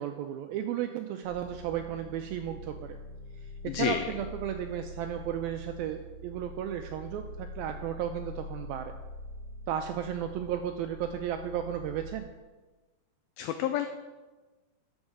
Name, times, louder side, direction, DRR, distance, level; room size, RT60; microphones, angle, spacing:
voice 1, 0.0-3.0 3.4-8.9 9.7-12.3, right 10 dB, 85° right, 6 dB, 2.1 m, -34 dB
sound 1, 1.2-12.2, left 1 dB, 10° left, 3.6 m, -44 dB
voice 2, 3.7-4.0 13.4-13.9, left 11 dB, 90° left, 8 dB, 2.0 m, -29 dB
12.5 x 6.4 x 4.9 m, 1.2 s
omnidirectional pair, 4.7 m